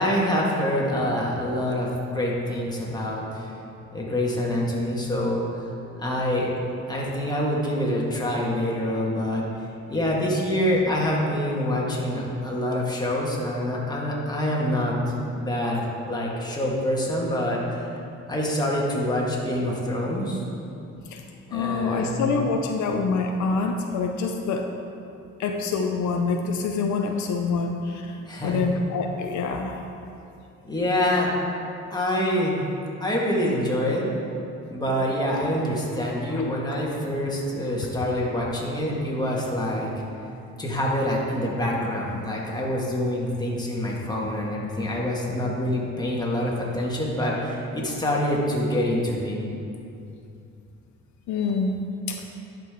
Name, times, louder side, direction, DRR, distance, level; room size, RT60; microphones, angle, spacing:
voice 1, 0.0-3.5 3.9-5.7 6.0-6.5 6.9-9.5 9.9-14.9 15.3-17.9 18.3-20.7 21.5-22.4 28.3-28.6 30.6-31.3 31.9-32.6 33.0-34.1 34.7-39.9 40.6-49.4, left 1 dB, 15° left, -4 dB, 1.7 m, -26 dB
voice 2, 21.5-24.7 25.4-29.8 36.3-36.4 36.7-36.8 51.3-51.8 52.1-52.2, left 4 dB, 70° left, 3 dB, 0.6 m, -26 dB
11.0 x 5.2 x 3.7 m, 2.7 s
cardioid pair, 90°, 30 cm